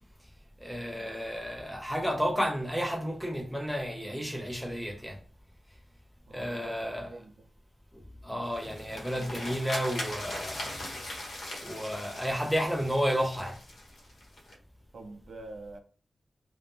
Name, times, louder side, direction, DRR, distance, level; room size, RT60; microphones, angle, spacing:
voice 1, 0.6-5.2 6.3-7.1 8.2-10.8 11.6-13.6, equal, ahead, 0.4 m, -32 dB
voice 2, 6.3-7.5 14.9-15.8, right 2 dB, 70° right, 0.6 m, -45 dB
sound 1, 8.4-14.5, left 1 dB, 75° left, 1.1 m, -40 dB
2.5 x 2.0 x 3.4 m
wide cardioid pair, 155°, 0 cm